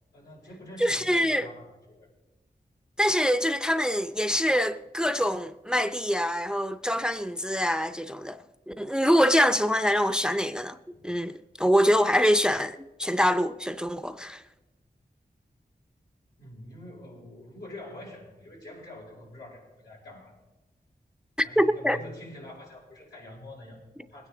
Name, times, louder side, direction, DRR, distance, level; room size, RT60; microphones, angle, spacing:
voice 1, 0.1-2.1 10.9-11.1 16.4-20.3 21.4-24.3, left 1 dB, 85° left, 6.1 m, -45 dB
voice 2, 0.8-1.5 3.0-10.8 11.0-14.4 21.6-22.0, equal, 5° right, 0.5 m, -25 dB
20.5 x 9.8 x 3.8 m
cardioid pair, 50°, 17 cm